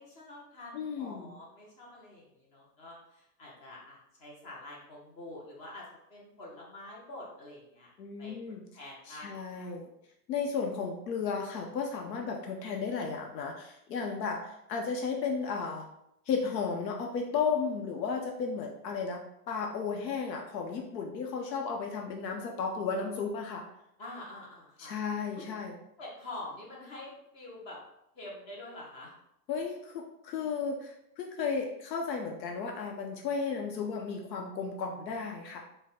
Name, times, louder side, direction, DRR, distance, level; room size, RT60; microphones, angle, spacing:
voice 1, 0.0-7.9 8.2-8.4 8.7-9.7 24.0-24.9 25.4-25.5 26.0-27.8 28.1-29.1, left 2 dB, 15° left, -3 dB, 0.4 m, -46 dB
voice 2, 0.7-1.3 8.0-8.6 9.1-9.9 10.3-15.9 16.3-23.6 24.8-25.7 29.5-35.6, left 5 dB, 85° left, 2 dB, 0.7 m, -34 dB
4.1 x 2.1 x 3.5 m, 0.80 s
supercardioid pair, 145°, 49 cm